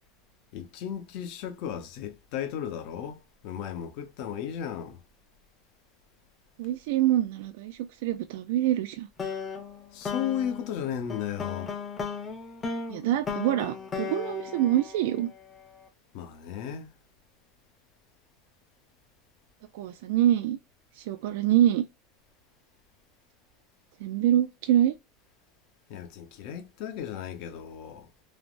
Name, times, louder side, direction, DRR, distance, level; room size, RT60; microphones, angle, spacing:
voice 1, 0.5-5.0 9.9-11.8 16.1-16.9 25.9-28.1, left 9 dB, 55° left, 0.7 m, -35 dB
voice 2, 6.6-9.1 12.9-15.3 19.7-20.6 21.0-21.8 24.0-24.9, right 12 dB, 70° right, 0.3 m, -25 dB
sound 1, 9.2-15.6, left 5 dB, 20° left, 0.6 m, -36 dB
3.2 x 2.0 x 2.5 m
supercardioid pair, 155°, 0 cm